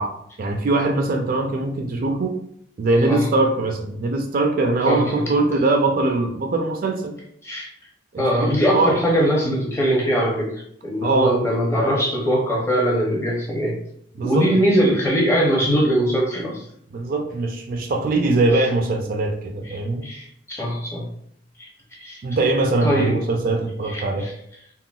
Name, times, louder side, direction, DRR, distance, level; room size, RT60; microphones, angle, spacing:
voice 1, 0.0-2.4 2.8-7.2 8.1-9.0 11.0-11.4 14.2-14.6 16.9-20.1 22.2-24.3, right 2 dB, 50° right, 3 dB, 0.3 m, -22 dB
voice 2, 4.9-5.2 7.4-7.7 8.2-10.5 10.8-13.8 14.2-16.6 20.0-21.1 21.6-21.7 22.0-22.2 22.8-23.2 23.9-24.3, equal, 15° left, -2 dB, 0.6 m, -21 dB
3.6 x 2.1 x 2.3 m, 0.70 s
head